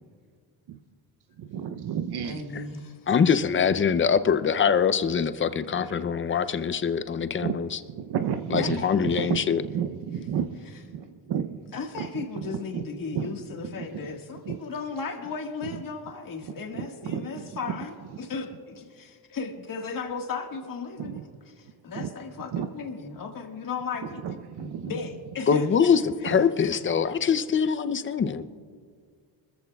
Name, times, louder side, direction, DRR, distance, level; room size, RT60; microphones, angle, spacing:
voice 1, 1.4-2.4 5.7-6.0 7.4-7.6 7.9-10.6 10.9-11.6 12.0-12.1 12.4-12.8 13.1-13.3 13.6-14.2 14.5-14.6 15.7-15.8 16.4-17.4 21.0-21.2 21.9-22.1 22.5-22.7 24.2-25.0 26.2-26.4, right 8 dB, 60° right, 9 dB, 0.7 m, -32 dB
voice 2, 2.2-3.0 8.6-9.2 11.7-21.2 21.6-25.9 26.2-26.8, left 4 dB, 45° left, 3 dB, 1.7 m, -36 dB
voice 3, 3.1-7.7 8.5-9.6 25.5-28.4, left 6 dB, 25° left, 12 dB, 0.5 m, -23 dB
25.0 x 14.0 x 2.3 m, 2.1 s
cardioid pair, 115°, 46 cm